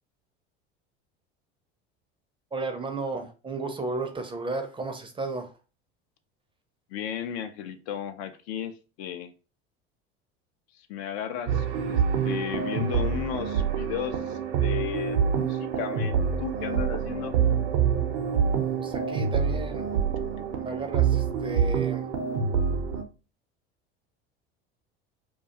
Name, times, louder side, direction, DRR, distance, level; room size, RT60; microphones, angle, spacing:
voice 1, 2.5-5.5 18.8-19.9 20.6-22.1, right 3 dB, 15° right, 6 dB, 0.4 m, -33 dB
voice 2, 6.9-9.3 10.7-17.3, left 9 dB, 75° left, 9 dB, 0.5 m, -35 dB
sound 1, 11.5-23.0, right 7 dB, 80° right, 0.6 m, -26 dB
2.3 x 2.2 x 2.7 m, 0.34 s
hypercardioid pair, 80°, 32 cm